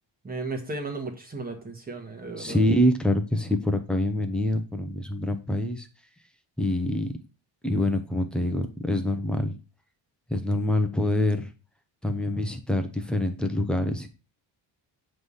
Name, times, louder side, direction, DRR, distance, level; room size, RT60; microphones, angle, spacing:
voice 1, 0.2-2.6, right 3 dB, 20° right, 4 dB, 1.4 m, -35 dB
voice 2, 2.4-5.9 6.6-7.1 7.6-9.6 10.3-11.5 12.0-14.1, left 1 dB, ahead, 6 dB, 0.6 m, -25 dB
7.9 x 3.4 x 5.5 m, 0.33 s
cardioid pair, 165°, 48 cm